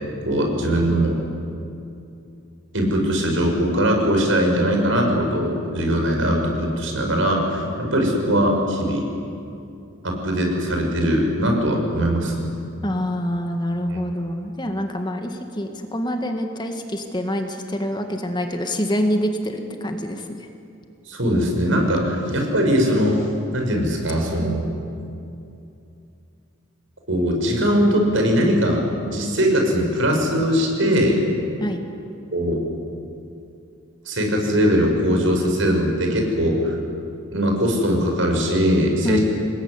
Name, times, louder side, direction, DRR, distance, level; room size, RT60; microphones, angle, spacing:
voice 1, 0.2-1.2 2.7-9.1 10.0-12.5 13.9-14.0 21.1-23.2 23.5-24.7 27.1-28.8 29.1-31.2 32.3-32.6 34.1-36.8 37.3-39.2, equal, 75° right, 1 dB, 5.9 m, -20 dB
voice 2, 12.8-20.3 31.6-31.8 39.0-39.2, equal, 20° left, 5 dB, 1.8 m, -26 dB
26.0 x 20.5 x 9.8 m, 2.6 s
head